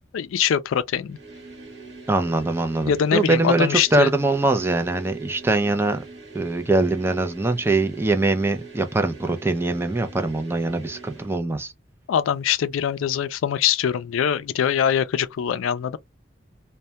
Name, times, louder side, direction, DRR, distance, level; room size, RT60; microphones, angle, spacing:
voice 1, 0.1-1.2 2.9-4.1 12.1-16.0, left 8 dB, 90° left, 0.3 m, -23 dB
sound 1, 1.1-11.4, right 4 dB, 55° right, 1.0 m, -43 dB
voice 2, 2.1-6.0 6.3-11.7, right 2 dB, 10° right, 0.3 m, -22 dB
2.1 x 2.1 x 2.7 m
head